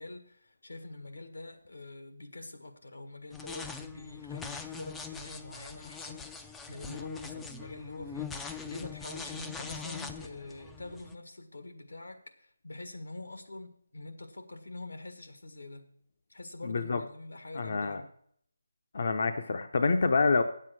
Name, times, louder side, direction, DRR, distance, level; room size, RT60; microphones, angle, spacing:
voice 1, 0.0-15.9 16.3-18.1, left 2 dB, 90° left, 6 dB, 1.7 m, -45 dB
sound 1, 3.3-11.1, left 6 dB, 5° left, 0.4 m, -42 dB
voice 2, 16.6-17.0 17.5-18.0 18.9-20.4, left 4 dB, 50° left, 7 dB, 0.6 m, -27 dB
9.2 x 7.6 x 6.2 m, 0.66 s
figure-of-eight pair, 170°, 0 cm